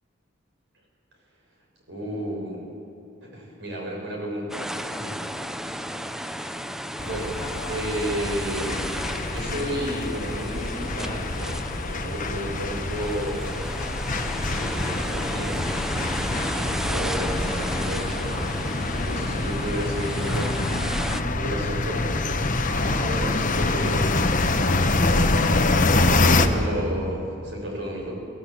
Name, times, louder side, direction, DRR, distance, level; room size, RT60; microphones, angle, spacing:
voice 1, 1.9-2.6 3.2-5.2 7.0-8.8 9.3-13.5 13.8-13.9 14.5-20.8 21.4-25.0 25.9-28.1, right 1 dB, 65° right, -1 dB, 6.2 m, -33 dB
sound 1, 4.5-21.2, equal, ahead, 0.6 m, -33 dB
sound 2, 7.0-26.5, left 2 dB, 40° left, 1.2 m, -25 dB
23.0 x 16.0 x 8.4 m, 2.6 s
head